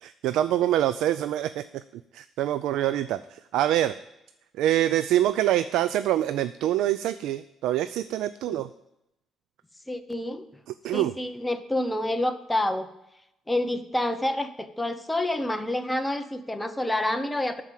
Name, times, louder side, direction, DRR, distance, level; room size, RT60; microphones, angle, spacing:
voice 1, 0.0-1.8 2.1-3.9 4.6-8.7 10.8-11.1, right 12 dB, 90° right, 13 dB, 0.3 m, -25 dB
voice 2, 9.9-10.5 10.9-12.9 13.5-17.6, left 1 dB, 5° left, 7 dB, 0.7 m, -28 dB
13.0 x 4.8 x 7.5 m, 0.86 s
cardioid pair, 120°, 0 cm